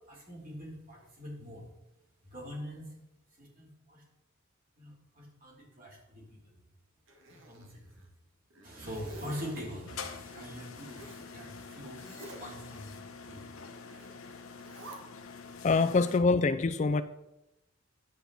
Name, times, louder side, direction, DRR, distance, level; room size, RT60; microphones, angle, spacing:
voice 1, 0.1-1.7 2.2-2.9 3.3-4.0 4.8-6.6 7.3-8.0 8.6-14.5, equal, 45° right, -3 dB, 3.4 m, -44 dB
Zipper (clothing), 7.1-8.1 8.5-9.6 10.9-11.3 11.9-12.6 13.9-14.2 14.6-15.0, right 2 dB, 70° right, 1.5 m, -49 dB
sound 1, 9.9-16.2, left 5 dB, 85° left, 0.9 m, -46 dB
voice 2, 15.6-17.0, left 4 dB, 35° left, 12 dB, 0.3 m, -25 dB
9.8 x 8.1 x 4.1 m, 0.90 s
head